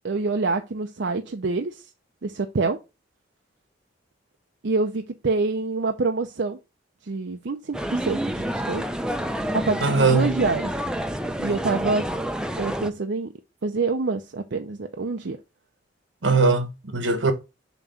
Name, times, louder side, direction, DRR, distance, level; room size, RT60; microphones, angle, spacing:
voice 1, 0.0-1.8 2.2-2.8 4.6-6.6 7.0-8.8 9.5-10.7 11.4-12.1 12.6-13.3 13.6-15.4, right 3 dB, 65° right, 0.6 m, -26 dB
sound 1, 7.7-12.9, right 1 dB, 5° right, 0.5 m, -28 dB
voice 2, 9.8-10.4 16.2-17.3, right 3 dB, 85° right, 1.3 m, -20 dB
7.1 x 3.1 x 5.7 m
head